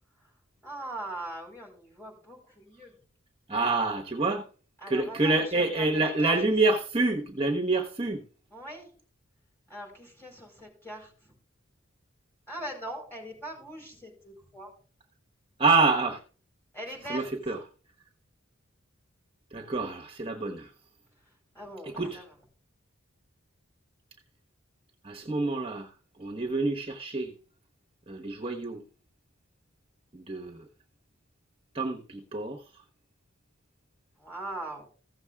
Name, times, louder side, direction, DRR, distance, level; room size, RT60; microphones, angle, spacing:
voice 1, 0.6-3.0 4.8-6.3 8.5-8.9 9.7-11.3 12.5-14.7 16.7-17.3 21.5-22.3 34.2-34.8, right 1 dB, 10° left, 4.9 m, -41 dB
voice 2, 3.5-4.5 4.9-8.2 15.6-16.2 17.1-17.6 19.5-20.7 22.0-22.2 25.0-25.9 26.2-27.3 28.1-28.8 30.1-30.6 31.7-32.6, right 3 dB, 25° right, 1.1 m, -27 dB
15.5 x 7.2 x 3.5 m
head